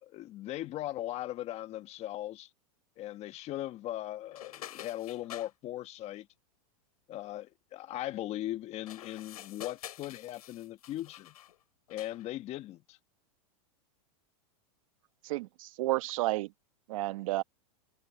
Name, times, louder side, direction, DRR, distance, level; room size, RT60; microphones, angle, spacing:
voice 1, 0.0-2.5 3.0-6.3 7.1-11.3 11.9-13.0, left 14 dB, 35° left, 1.5 m, -39 dB
sound 1, 4.3-5.5 8.7-11.6 11.9-12.3, left 12 dB, 80° left, 7.5 m, -48 dB
voice 2, 15.2-16.5 16.9-17.4, right 18 dB, 65° right, 1.4 m, -31 dB
supercardioid pair, 135°, 19 cm